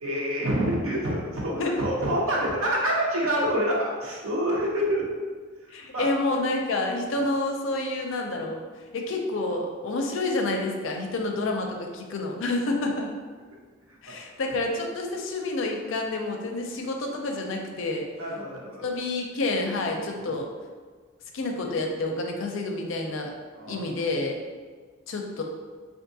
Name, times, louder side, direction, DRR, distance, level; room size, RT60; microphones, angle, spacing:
voice 1, 0.0-5.0 5.9-6.1 13.9-14.0 18.2-18.9 20.2-20.3 23.5-23.8, equal, 80° right, -4 dB, 0.8 m, -27 dB
voice 2, 5.7-8.6 8.9-13.1 14.0-18.1 18.8-20.5 21.3-23.3 23.7-24.4 25.1-25.4, left 2 dB, 65° left, 2 dB, 0.5 m, -28 dB
3.5 x 2.5 x 2.7 m, 1.5 s
head